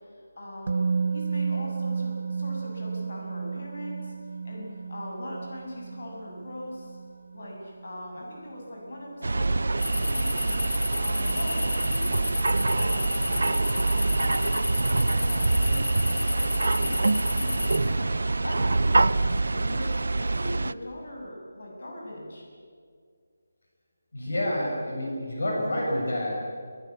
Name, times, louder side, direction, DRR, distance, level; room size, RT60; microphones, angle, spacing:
voice 1, 0.0-4.1 4.4-7.0 7.3-9.6 9.9-10.6 11.0-12.4 12.7-13.8 14.1-18.1 18.4-22.4, left 1 dB, 50° left, -2 dB, 7.5 m, -40 dB
Musical instrument, 0.7-8.6 8.8-9.0, right 5 dB, 45° right, 0.9 m, -33 dB
sound 1, 9.2-20.7, right 2 dB, 75° right, 0.7 m, -25 dB
sound 2, 9.8-17.8, left 2 dB, 80° left, 3.7 m, -32 dB
voice 2, 24.1-26.3, left 1 dB, 65° left, -2 dB, 6.9 m, -28 dB
22.5 x 19.0 x 8.7 m, 2.1 s
figure-of-eight pair, 175°, 0 cm